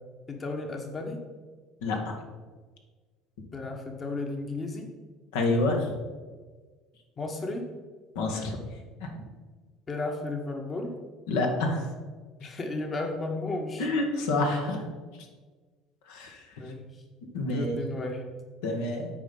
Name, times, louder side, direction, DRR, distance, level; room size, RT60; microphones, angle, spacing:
voice 1, 0.3-1.2 3.5-4.9 7.2-7.7 9.9-11.0 12.4-13.9 16.6-17.0 17.5-18.2, left 2 dB, 35° left, 3 dB, 1.3 m, -34 dB
voice 2, 1.8-2.1 5.3-5.9 8.1-8.6 9.0-9.1 11.3-11.9 13.8-14.8 16.1-16.4 17.3-17.8 18.6-19.1, left 2 dB, 75° left, 2 dB, 1.5 m, -27 dB
8.9 x 4.5 x 5.5 m, 1.4 s
hypercardioid pair, 75°, 0 cm